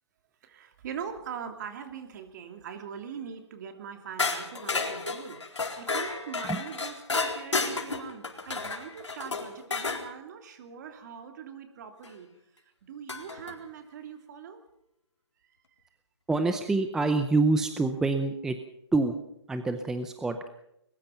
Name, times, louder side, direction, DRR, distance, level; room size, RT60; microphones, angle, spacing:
voice 1, 0.4-12.3 12.5-14.6 15.5-15.6, right 7 dB, 40° right, 7 dB, 2.8 m, -42 dB
sound 1, 4.2-10.0 12.0-12.1 13.1-13.5, left 4 dB, 90° left, 4.1 m, -32 dB
voice 2, 16.3-18.6 18.9-19.1 19.5-20.5, right 3 dB, 5° right, 8 dB, 0.7 m, -26 dB
21.5 x 21.0 x 5.8 m, 0.80 s
hypercardioid pair, 155°, 15 cm